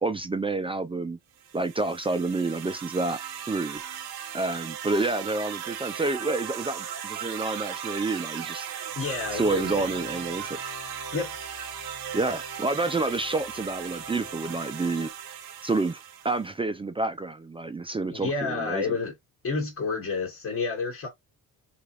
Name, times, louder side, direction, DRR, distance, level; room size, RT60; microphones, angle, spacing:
voice 1, 0.0-1.2 1.5-3.2 3.5-3.8 4.3-8.7 9.3-10.6 12.1-15.1 15.6-18.9, right 3 dB, 15° right, 0.3 m, -29 dB
sound 1, 1.4-16.5, right 9 dB, 80° right, 0.7 m, -37 dB
sound 2, 8.9-15.1, left 4 dB, 60° left, 1.2 m, -46 dB
voice 2, 9.0-9.9 11.1-11.3 18.1-19.1 19.4-21.1, left 4 dB, 35° left, 1.2 m, -30 dB
3.3 x 3.0 x 2.5 m
cardioid pair, 75°, 38 cm